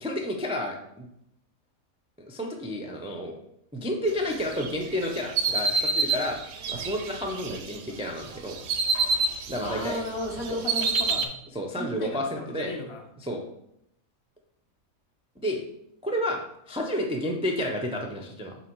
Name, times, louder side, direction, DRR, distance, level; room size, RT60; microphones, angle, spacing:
voice 1, 0.0-1.1 2.3-3.3 3.7-8.6 9.5-10.0 10.5-10.6 11.5-12.7 13.2-13.4 15.4-15.6 16.0-16.4 16.7-18.6, equal, 10° right, 0 dB, 0.4 m, -31 dB
sound 1, 4.5-7.8 8.2-10.0 10.2-11.3, right 4 dB, 60° right, 0.8 m, -27 dB
voice 2, 9.6-11.3 11.8-13.0, left 1 dB, 50° left, 1 dB, 1.2 m, -34 dB
7.6 x 2.9 x 4.6 m, 0.78 s
omnidirectional pair, 1.5 m